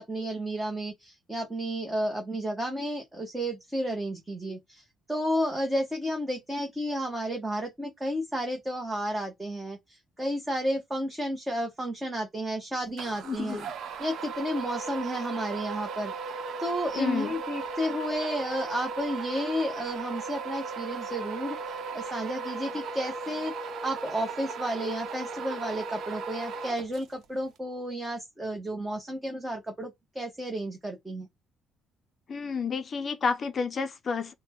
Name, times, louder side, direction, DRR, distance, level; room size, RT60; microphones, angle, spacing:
voice 1, 0.0-13.7 14.0-16.1 16.6-21.6 21.9-23.5 23.8-31.3, equal, 10° right, 1.0 m, -32 dB
sound 1, 13.0-27.2, right 4 dB, 55° right, 0.9 m, -36 dB
voice 2, 13.3-13.6 17.0-17.3 32.3-34.3, left 5 dB, 35° left, 0.5 m, -30 dB
4.2 x 2.1 x 4.2 m
cardioid pair, 150°, 0 cm